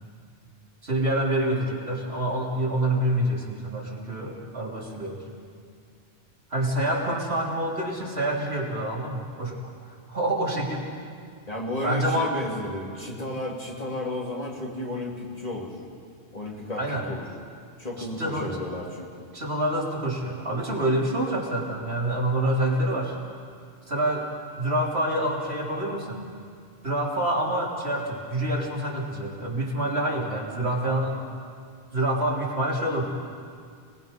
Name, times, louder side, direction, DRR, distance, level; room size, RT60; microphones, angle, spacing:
voice 1, 0.8-5.2 6.5-9.7 10.1-10.9 11.8-12.4 16.8-17.0 18.0-18.5 19.3-23.2 23.9-24.3 24.6-26.2 26.8-31.2 31.9-33.0, right 1 dB, 70° right, -3 dB, 3.7 m, -27 dB
voice 2, 11.5-15.8 16.3-17.2 17.8-19.1, left 1 dB, 35° left, -3 dB, 3.3 m, -33 dB
30.0 x 20.0 x 5.3 m, 2.2 s
omnidirectional pair, 1.1 m